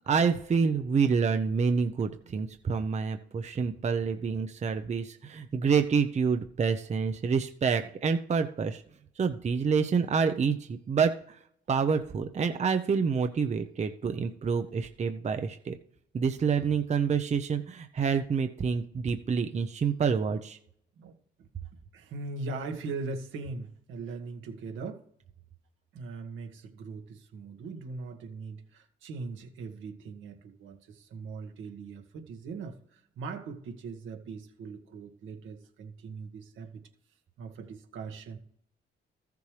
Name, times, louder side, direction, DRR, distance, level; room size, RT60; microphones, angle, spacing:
voice 1, 0.1-8.8 9.2-11.1 11.7-15.8 16.1-20.6, right 5 dB, 35° right, 7 dB, 0.7 m, -27 dB
voice 2, 21.0-21.5 21.9-25.0 25.9-36.8 37.4-38.4, right 4 dB, 80° right, 4 dB, 1.6 m, -40 dB
14.0 x 6.8 x 3.3 m, 0.67 s
cardioid pair, 90°, 20 cm